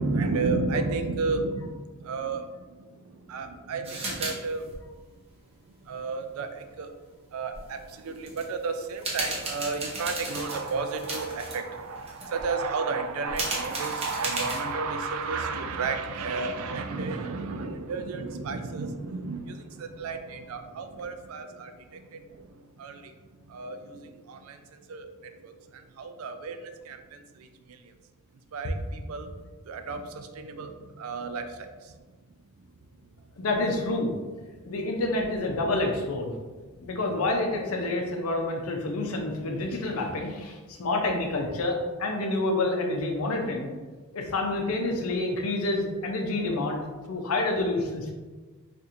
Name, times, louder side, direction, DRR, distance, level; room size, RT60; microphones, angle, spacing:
voice 1, 0.0-4.9 5.8-6.9 7.3-23.1 23.4-27.9 28.5-29.3 29.7-32.0, right 4 dB, 80° right, 7 dB, 0.4 m, -33 dB
sound 1, 3.8-4.4 4.6-4.7 7.5-7.6 8.2-8.5 8.9-11.6 12.0-12.4 13.3-14.7, right 2 dB, 30° right, 0.7 m, -34 dB
voice 2, 33.4-34.1 34.6-36.4 36.8-43.7 44.1-48.1, left 2 dB, 90° left, 2 dB, 0.6 m, -28 dB
4.2 x 2.6 x 2.5 m, 1.3 s
head